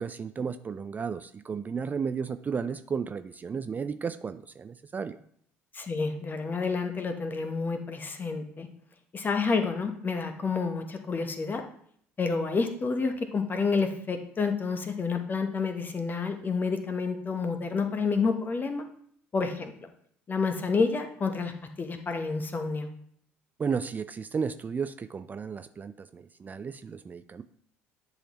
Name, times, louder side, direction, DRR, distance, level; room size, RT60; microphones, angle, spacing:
voice 1, 0.0-5.2 23.6-27.4, right 6 dB, 25° right, 11 dB, 0.3 m, -33 dB
voice 2, 5.7-8.7 9.1-11.6 12.2-18.8 19.3-19.7 20.3-22.9, left 4 dB, 30° left, 6 dB, 1.1 m, -29 dB
10.0 x 4.0 x 3.0 m, 0.65 s
figure-of-eight pair, 60°, 7 cm